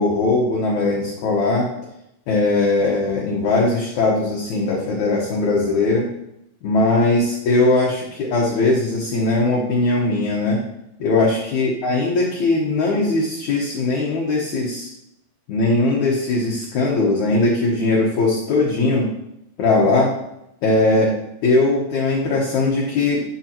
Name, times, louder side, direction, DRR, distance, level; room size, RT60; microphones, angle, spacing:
voice 1, 0.0-1.7 2.3-6.1 6.6-10.6 11.0-14.9 15.5-19.1 19.6-20.1 20.6-21.2 21.4-23.2, left 2 dB, 65° left, -3 dB, 2.1 m, -19 dB
9.8 x 8.9 x 2.9 m, 0.81 s
omnidirectional pair, 4.6 m